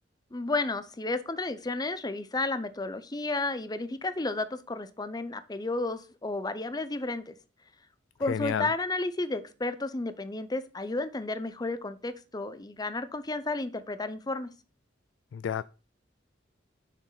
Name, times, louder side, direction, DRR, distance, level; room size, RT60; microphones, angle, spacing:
voice 1, 0.3-7.3 8.2-14.5, left 2 dB, 20° left, 0.6 m, -32 dB
voice 2, 8.3-8.7 15.3-15.6, left 8 dB, 80° left, 0.3 m, -30 dB
7.3 x 6.1 x 5.6 m
head